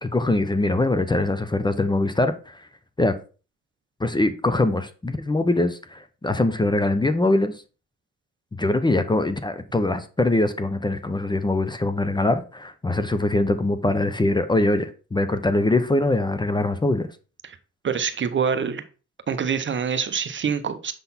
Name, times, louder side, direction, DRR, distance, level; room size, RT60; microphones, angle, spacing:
voice 1, 0.0-2.7 3.0-3.1 4.0-7.5 8.6-17.1, left 2 dB, 15° left, 0.7 m, -22 dB
voice 2, 17.8-18.8 19.3-20.9, right 7 dB, 40° right, 0.7 m, -25 dB
6.9 x 3.9 x 4.1 m
cardioid pair, 90°, 30 cm